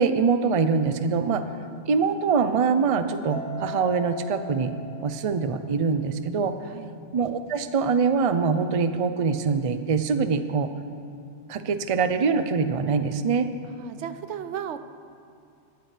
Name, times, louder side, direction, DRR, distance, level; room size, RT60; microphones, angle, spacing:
voice 1, 0.0-1.4 1.9-4.7 5.0-6.5 7.1-10.7 11.5-13.5, right 5 dB, 40° right, 9 dB, 0.5 m, -24 dB
Mallet percussion, 3.3-5.8, left 4 dB, 80° left, 1.5 m, -39 dB
voice 2, 6.6-7.0 13.8-14.8, right 9 dB, 85° right, 11 dB, 1.0 m, -35 dB
19.5 x 13.5 x 3.4 m, 2.5 s
omnidirectional pair, 1.2 m